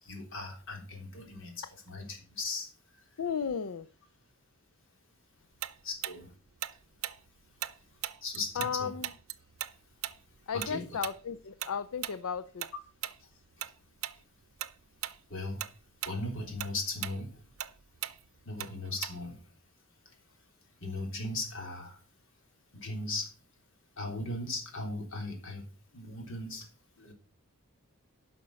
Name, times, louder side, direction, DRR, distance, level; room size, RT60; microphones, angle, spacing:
voice 1, 0.0-2.7 5.8-6.3 8.2-8.9 10.5-10.9 15.3-15.6 16.0-17.3 18.4-19.4 20.8-22.0 22.7-23.3 24.0-25.6 25.9-26.7 27.0-27.1, left 2 dB, 60° left, 3 dB, 3.3 m, -37 dB
voice 2, 3.2-3.9 8.6-9.1 10.5-12.7, left 7 dB, 80° left, 13 dB, 0.5 m, -34 dB
Tick-tock, 5.6-8.8 9.0-13.7 14.0-14.2 14.6-15.2 15.5-19.4, right 12 dB, 75° right, 0.6 m, -39 dB
11.0 x 6.0 x 6.3 m, 0.40 s
head